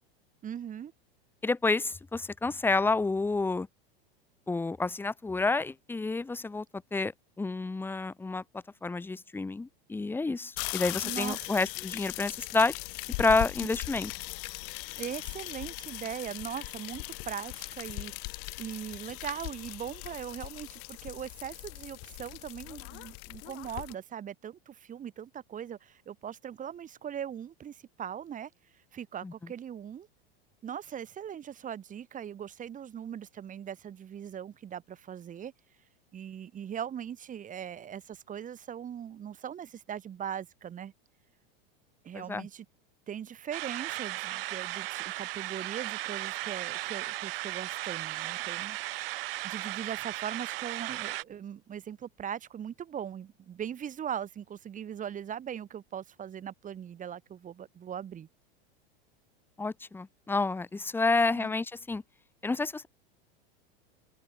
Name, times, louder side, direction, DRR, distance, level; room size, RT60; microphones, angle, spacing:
voice 1, 0.4-0.9 11.0-11.5 13.6-13.7 15.0-28.5 28.9-30.1 30.6-35.5 36.1-40.9 42.0-42.7 43.1-48.8 49.4-58.3 61.3-61.5, right 9 dB, 25° right, 6.0 m, -40 dB
voice 2, 1.4-3.7 4.5-6.6 6.9-7.1 7.4-8.4 8.8-12.8 13.2-14.1 29.2-29.3 42.3-42.5 59.6-62.0 62.4-62.9, left 3 dB, 5° left, 1.0 m, -29 dB
sound 1, 10.6-23.9, left 40 dB or more, 55° left, 3.6 m, -39 dB
sound 2, 43.5-51.2, right 18 dB, 70° right, 3.5 m, -36 dB
supercardioid pair, 130°, 30 cm